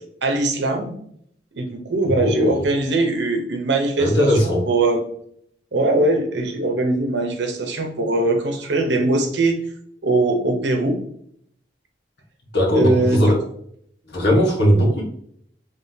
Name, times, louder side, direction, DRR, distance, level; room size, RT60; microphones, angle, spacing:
voice 1, 0.2-1.0 1.5-5.0 5.7-9.6 10.0-11.0 12.8-13.3, right 2 dB, 70° right, 4 dB, 0.8 m, -21 dB
voice 2, 2.0-2.6 4.0-4.7 12.5-13.3 14.1-15.0, equal, 65° left, -2 dB, 1.3 m, -18 dB
3.7 x 3.4 x 2.7 m, 0.66 s
head